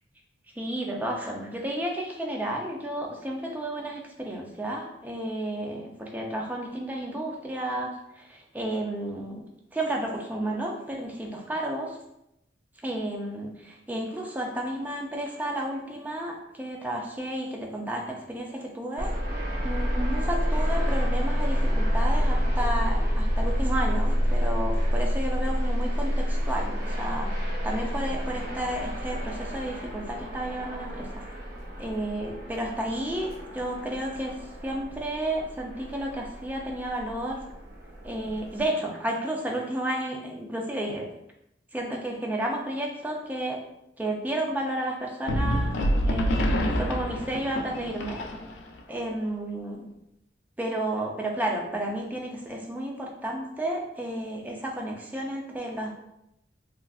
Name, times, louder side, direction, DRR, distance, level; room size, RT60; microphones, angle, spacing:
voice 1, 0.6-12.0 12.8-19.1 19.6-31.5 31.8-34.4 34.6-37.4 38.0-41.1 41.7-43.6 44.0-48.2 48.9-49.9 50.6-55.9, right 1 dB, 10° right, 0 dB, 0.4 m, -32 dB
sound 1, 19.0-38.7, equal, 55° right, 0.7 m, -28 dB
sound 2, 45.3-48.8, equal, 70° left, 0.4 m, -27 dB
3.5 x 2.4 x 2.3 m, 0.81 s
head